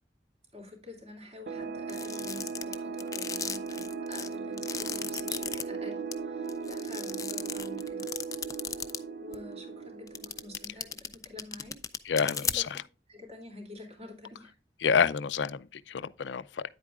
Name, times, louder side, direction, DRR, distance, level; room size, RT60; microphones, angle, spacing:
voice 1, 0.5-8.2 9.2-11.8 12.1-12.8 13.1-14.5, left 2 dB, 35° right, 2.8 m, -47 dB
sound 1, 1.5-10.8, right 5 dB, 60° right, 0.6 m, -37 dB
sound 2, 1.9-5.6 6.1-6.2 6.5-9.0 9.3-9.4 10.1-12.8, left 7 dB, 20° left, 0.5 m, -35 dB
voice 2, 12.1-12.6 14.8-16.6, left 6 dB, 90° left, 0.5 m, -28 dB
9.8 x 8.3 x 2.4 m
head